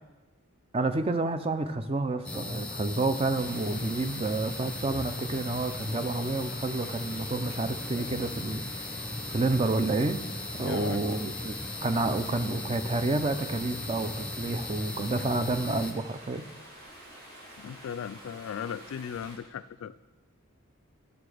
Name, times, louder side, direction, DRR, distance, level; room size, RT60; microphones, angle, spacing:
voice 1, 0.7-8.9 9.3-10.2 10.6-11.5 11.8-16.5, right 2 dB, 25° right, 9 dB, 0.4 m, -29 dB
sound 1, 2.2-15.9, left 2 dB, 5° left, 0.7 m, -37 dB
Stream, 3.3-19.4, right 1 dB, 45° right, 2.6 m, -49 dB
voice 2, 10.6-11.0 17.6-19.9, left 8 dB, 70° left, 15 dB, 0.3 m, -37 dB
11.0 x 6.9 x 4.9 m, 1.1 s
head